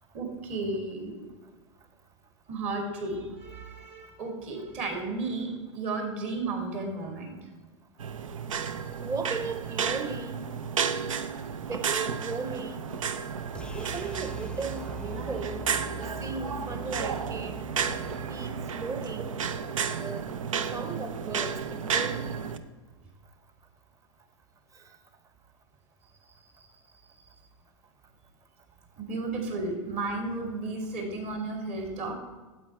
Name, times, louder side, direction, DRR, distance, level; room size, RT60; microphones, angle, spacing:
voice 1, 0.1-1.2 2.5-7.4 26.4-26.5 29.0-32.1, right 3 dB, 40° right, 3 dB, 2.6 m, -33 dB
sound 1, 8.0-22.6, right 7 dB, 75° right, 0.6 m, -32 dB
voice 2, 9.0-10.4 11.7-12.8 13.7-15.6 16.0-17.6 18.1-19.3 19.7-20.3 20.7-22.5, right 4 dB, 20° right, 9 dB, 1.0 m, -36 dB
sound 2, 13.5-19.7, left 1 dB, 5° left, 0.4 m, -44 dB
8.5 x 7.7 x 4.6 m, 1.3 s
figure-of-eight pair, 95°, 17 cm